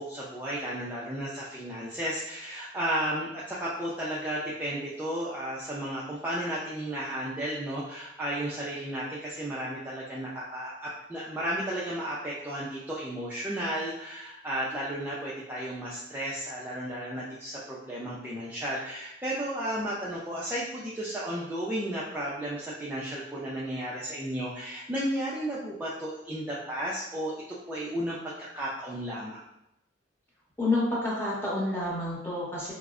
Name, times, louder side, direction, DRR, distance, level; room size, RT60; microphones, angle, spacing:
voice 1, 0.0-27.4 27.7-29.4, right 1 dB, 10° right, -7 dB, 0.4 m, -33 dB
voice 2, 30.6-32.7, left 2 dB, 15° left, -6 dB, 0.9 m, -29 dB
4.4 x 2.0 x 2.4 m, 0.84 s
head